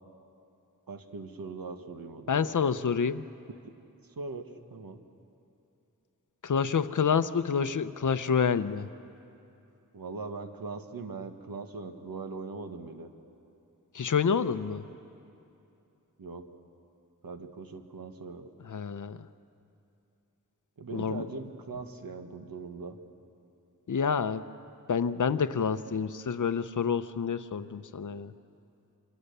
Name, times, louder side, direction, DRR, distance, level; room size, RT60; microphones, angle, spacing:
voice 1, 0.9-2.5 3.6-3.7 4.2-4.4 4.7-5.0 9.9-13.1 14.8-15.0 16.2-16.5 17.2-18.5 20.8-23.0, right 4 dB, 85° right, 6 dB, 1.6 m, -40 dB
voice 2, 2.3-3.2 6.4-8.9 13.9-14.8 18.7-19.2 20.9-21.2 23.9-24.4 24.9-28.3, left 6 dB, 60° left, 12 dB, 0.8 m, -28 dB
27.5 x 25.5 x 6.8 m, 2.8 s
wide cardioid pair, 110°, 34 cm